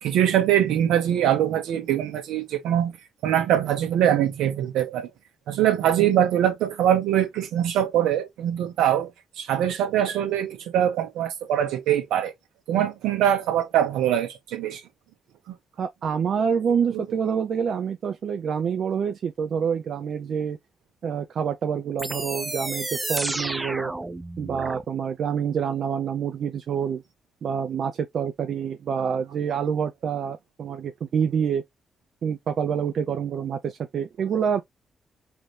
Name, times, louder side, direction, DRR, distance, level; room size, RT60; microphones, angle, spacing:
voice 1, 0.0-2.9 3.2-5.1 5.5-9.1 9.4-12.3 12.7-14.8 15.5-15.6 16.9-17.0, right 10 dB, 75° right, 1.2 m, -23 dB
voice 2, 15.8-20.6 21.0-23.9 24.4-27.0 27.4-31.6 32.2-34.6, right 7 dB, 60° right, 0.5 m, -27 dB
sound 1, 22.0-24.8, right 2 dB, 20° right, 0.6 m, -31 dB
4.8 x 2.7 x 3.2 m
hypercardioid pair, 45°, 0 cm